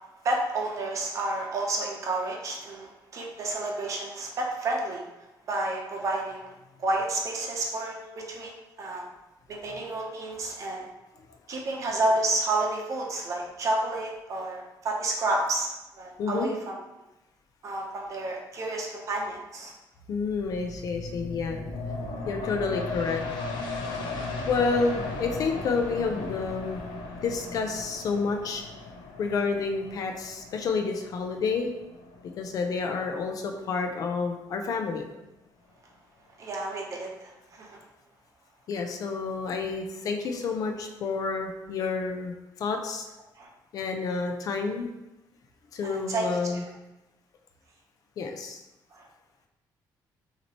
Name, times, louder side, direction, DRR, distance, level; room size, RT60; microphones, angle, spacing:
voice 1, 0.2-5.0 5.5-6.5 6.8-8.5 8.8-9.1 9.5-10.9 11.5-15.7 16.0-16.7 17.6-19.7 36.4-37.8 43.4-43.5 45.8-46.6 48.9-49.1, right 2 dB, 45° right, 0 dB, 0.8 m, -30 dB
voice 2, 20.1-21.6 22.3-23.2 24.5-26.8 27.2-28.6 29.2-31.7 32.4-35.1 38.7-43.1 43.7-44.9 45.7-46.6 48.2-48.6, left 4 dB, 50° left, 4 dB, 0.6 m, -29 dB
sound 1, 20.2-33.5 33.9-34.0, left 3 dB, 80° left, 0.8 m, -37 dB
6.1 x 2.9 x 3.0 m, 0.97 s
cardioid pair, 175°, 8 cm